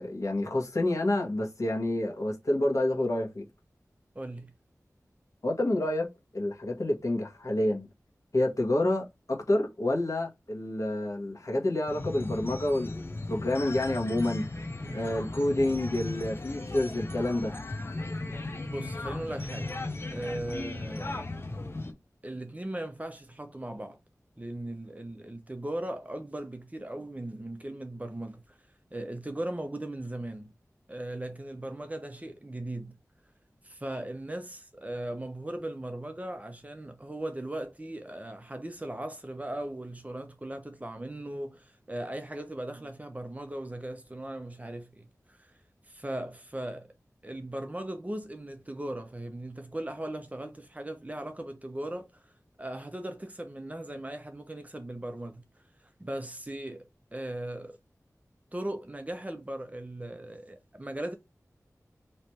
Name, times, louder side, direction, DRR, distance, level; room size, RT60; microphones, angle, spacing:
voice 1, 0.0-3.4 5.4-6.1 6.3-7.9 8.3-14.5 14.9-17.5, left 1 dB, 60° left, 1.6 m, -28 dB
voice 2, 4.1-4.5 14.8-15.0 18.7-19.7 20.1-21.2 22.2-24.0 24.4-28.4 28.9-30.5 30.9-33.0 33.6-45.5 45.9-46.9 47.2-52.1 52.6-55.4 56.0-57.8 58.5-61.1, right 1 dB, 25° right, 0.9 m, -38 dB
sound 1, 11.9-21.9, left 2 dB, 40° left, 1.0 m, -36 dB
3.3 x 3.2 x 4.3 m
wide cardioid pair, 50°, 6 cm